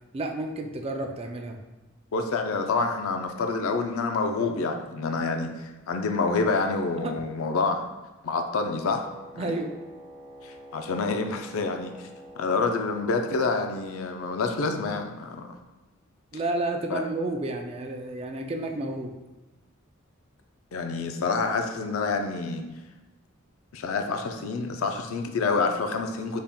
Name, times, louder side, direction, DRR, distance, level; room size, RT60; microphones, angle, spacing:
voice 1, 0.1-1.6 7.0-7.1 9.4-9.7 16.3-19.1, right 2 dB, 30° right, 4 dB, 0.3 m, -31 dB
voice 2, 2.1-7.8 8.2-9.1 9.3-9.5 10.4-12.1 12.4-15.6 16.9-17.0 20.7-22.6 23.7-26.4, left 4 dB, 85° left, 5 dB, 0.4 m, -27 dB
Wind instrument woodwind instrument, 8.6-13.9, equal, 20° left, 0.9 m, -47 dB
4.1 x 3.5 x 2.2 m, 1.1 s
head